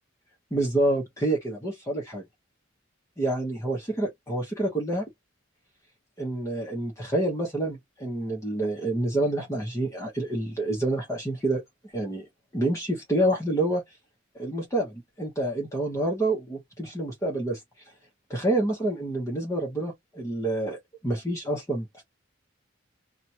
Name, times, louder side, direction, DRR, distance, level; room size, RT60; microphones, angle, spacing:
voice 1, 0.5-2.2 3.2-5.0 6.2-11.6 11.9-12.2 12.5-13.8 14.3-17.6 18.3-22.0, right 1 dB, 15° left, 0.9 m, -28 dB
2.9 x 2.3 x 2.8 m
head